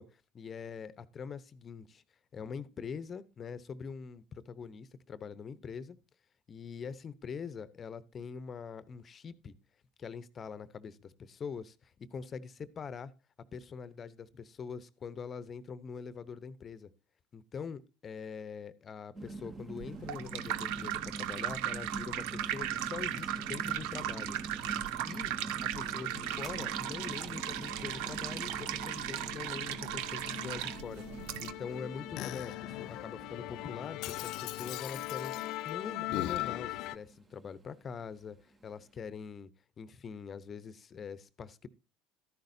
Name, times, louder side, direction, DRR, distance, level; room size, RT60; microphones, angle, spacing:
voice 1, 0.0-2.0 2.3-6.0 6.5-9.5 10.0-13.1 13.4-16.9 17.3-24.4 25.1-25.3 25.6-31.0 31.4-39.5 39.8-41.7, left 6 dB, 35° left, 0.9 m, -44 dB
sound 1, 19.1-39.0, right 2 dB, 30° right, 1.4 m, -46 dB
sound 2, 19.8-31.5, right 12 dB, 70° right, 0.6 m, -37 dB
Musical instrument, 25.8-37.0, left 16 dB, 65° left, 0.6 m, -41 dB
13.0 x 10.5 x 2.7 m
hypercardioid pair, 75°, 0 cm